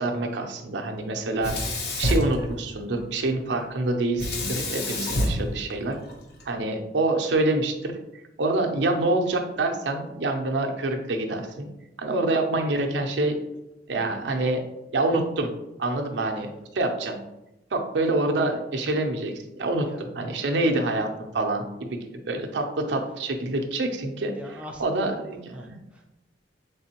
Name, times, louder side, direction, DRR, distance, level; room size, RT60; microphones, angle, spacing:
voice 1, 0.0-1.5 2.0-6.0 6.5-7.9 8.4-11.7 12.0-13.4 13.9-14.6 14.9-15.5 15.8-17.2 17.7-21.1 21.3-22.0 22.3-24.3 24.8-25.7, right 2 dB, 80° right, 3 dB, 0.5 m, -26 dB
Sink (filling or washing), 1.4-3.0 4.2-6.4, left 1 dB, 60° left, 0.8 m, -28 dB
voice 2, 6.0-6.3 19.8-20.1 24.3-25.1 25.5-26.1, equal, 5° right, 0 dB, 0.4 m, -42 dB
3.6 x 3.4 x 2.8 m, 0.91 s
head